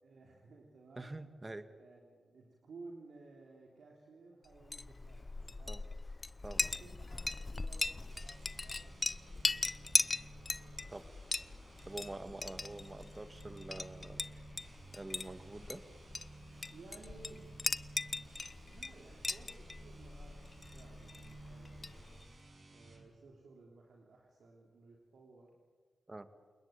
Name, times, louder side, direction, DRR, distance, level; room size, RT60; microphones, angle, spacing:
voice 1, 0.0-1.1 1.6-6.0 6.5-10.2 16.7-17.6 18.7-22.2 22.7-25.5, right 3 dB, 80° right, -1 dB, 3.4 m, -57 dB
voice 2, 1.0-1.7 5.7-5.8 6.4-6.6 10.9-11.0 11.9-14.2 14.9-15.9 26.1-26.3, right 2 dB, 30° right, 10 dB, 2.2 m, -46 dB
Chink clink, 4.5-22.4, left 3 dB, 40° left, 0.7 m, -39 dB
sound 1, 8.0-23.1, right 2 dB, 60° right, 5.9 m, -55 dB
28.0 x 21.0 x 9.0 m, 1.5 s
supercardioid pair, 40°, 0 cm